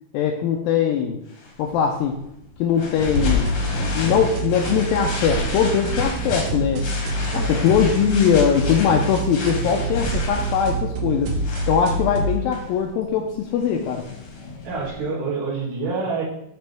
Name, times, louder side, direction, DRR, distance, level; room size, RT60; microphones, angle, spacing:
voice 1, 0.1-1.2 1.6-2.2 2.6-3.5 3.9-6.8 7.5-11.3 11.7-14.0, left 7 dB, 85° left, 3 dB, 2.1 m, -21 dB
sound 1, 1.3-15.0, left 3 dB, 60° left, 1.5 m, -32 dB
sound 2, 3.0-12.4, right 2 dB, 70° right, 2.3 m, -26 dB
voice 2, 7.3-7.6 14.6-16.2, right 4 dB, 85° right, -7 dB, 4.6 m, -27 dB
11.0 x 4.2 x 3.4 m, 0.79 s
omnidirectional pair, 4.7 m